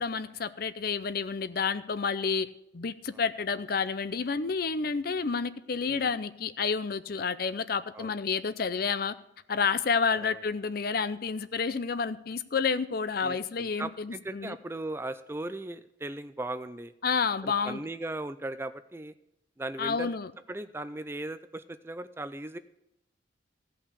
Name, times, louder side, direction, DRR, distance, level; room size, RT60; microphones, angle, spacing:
voice 1, 0.0-2.5 2.7-9.1 9.5-14.6 17.0-17.8 19.8-20.3, left 5 dB, 50° left, 14 dB, 0.5 m, -30 dB
voice 2, 13.2-16.9 17.4-19.1 19.6-20.1 20.5-22.6, right 2 dB, 10° right, 12 dB, 0.4 m, -38 dB
16.0 x 5.7 x 6.7 m, 0.82 s
head